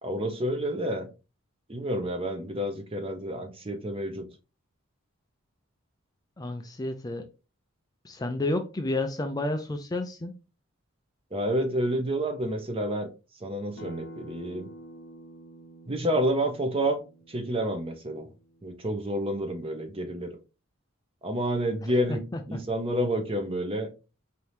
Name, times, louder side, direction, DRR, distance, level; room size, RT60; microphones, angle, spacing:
voice 1, 0.0-1.1 1.7-4.2 11.3-13.1 13.4-14.7 15.9-17.0 17.3-18.3 18.6-20.3 21.2-22.2 22.5-23.9, right 1 dB, 25° right, 0.7 m, -29 dB
voice 2, 6.4-7.3 8.0-10.3 22.3-22.6, left 2 dB, 15° left, 0.4 m, -31 dB
Acoustic guitar, 13.8-19.0, equal, 70° left, 0.7 m, -48 dB
4.5 x 2.7 x 3.3 m
head